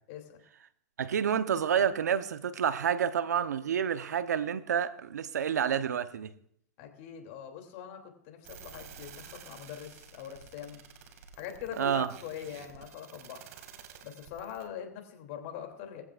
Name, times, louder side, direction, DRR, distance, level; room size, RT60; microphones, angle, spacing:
voice 1, 0.1-0.4 6.8-10.8 11.3-13.4 14.0-16.0, left 9 dB, 55° left, 2.9 m, -42 dB
voice 2, 1.0-6.3 11.8-12.1, right 8 dB, 85° right, 0.9 m, -29 dB
sound 1, 8.4-14.7, right 7 dB, 65° right, 2.3 m, -51 dB
21.0 x 15.0 x 2.5 m
hypercardioid pair, 115°, 9 cm